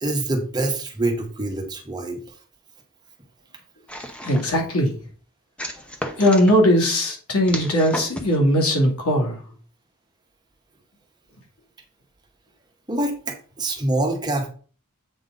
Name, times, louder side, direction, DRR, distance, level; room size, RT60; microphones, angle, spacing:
voice 1, 0.0-2.2 12.9-14.5, right 2 dB, 20° right, 2 dB, 1.3 m, -25 dB
sound 1, 3.9-4.6 5.6-6.6 7.5-8.4, equal, 5° left, 0.8 m, -33 dB
voice 2, 4.2-4.9 6.2-9.4, equal, 80° left, 0 dB, 2.4 m, -19 dB
7.9 x 4.9 x 3.9 m, 0.40 s
head